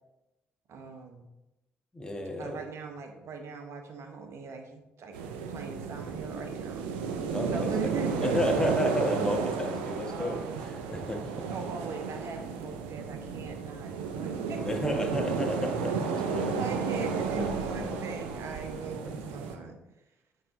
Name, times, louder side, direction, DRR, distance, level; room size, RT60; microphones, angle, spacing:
voice 1, 0.7-1.3 2.4-5.2 5.5-6.9 7.5-8.5 10.1-10.6 11.5-14.8 16.6-19.8, right 4 dB, 55° right, 5 dB, 1.0 m, -40 dB
voice 2, 1.9-2.6 7.3-7.9 8.2-10.4 10.9-11.4 14.6-16.5 17.4-18.1 19.0-19.4, left 1 dB, 15° left, 2 dB, 1.4 m, -32 dB
sound 1, 5.1-19.6, right 5 dB, 80° right, 0.5 m, -33 dB
8.3 x 3.3 x 3.8 m, 0.95 s
hypercardioid pair, 45°, 5 cm